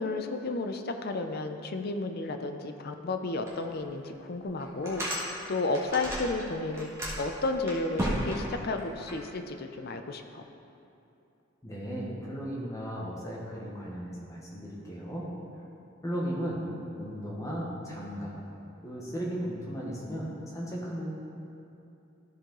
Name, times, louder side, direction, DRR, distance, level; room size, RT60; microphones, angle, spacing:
voice 1, 0.0-6.9 7.2-10.4, left 2 dB, 50° left, 6 dB, 0.5 m, -32 dB
sound 1, 3.5-3.6 4.0-4.1 4.6-6.4 6.7-9.1, equal, 15° right, 1.5 m, -33 dB
voice 2, 11.6-15.3 16.0-16.7 16.9-18.4 18.8-21.1, equal, 15° left, -4 dB, 1.1 m, -36 dB
13.5 x 4.8 x 3.8 m, 2.8 s
head